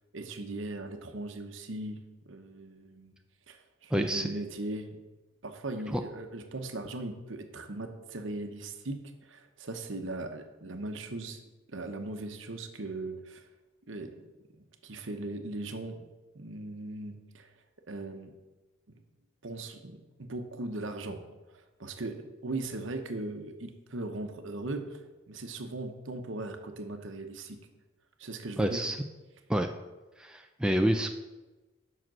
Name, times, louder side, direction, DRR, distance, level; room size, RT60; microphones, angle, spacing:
voice 1, 0.1-3.1 3.5-5.0 5.4-11.4 11.7-13.4 13.9-14.2 14.6-16.1 16.3-17.5 17.9-18.3 19.4-21.2 21.5-25.0 25.3-27.6 28.2-28.8, right 2 dB, 65° right, 6 dB, 1.0 m, -39 dB
voice 2, 3.9-4.3 5.9-6.0 28.6-29.0 29.5-29.7 30.2-31.1, equal, 5° right, 4 dB, 0.3 m, -28 dB
7.6 x 5.9 x 6.1 m, 1.1 s
head